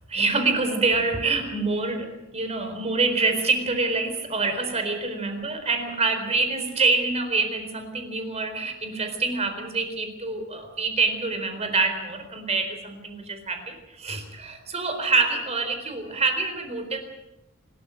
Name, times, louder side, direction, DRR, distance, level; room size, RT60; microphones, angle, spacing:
voice 1, 0.1-17.0, right 3 dB, 30° right, 7 dB, 4.1 m, -26 dB
26.5 x 13.5 x 8.9 m, 0.95 s
head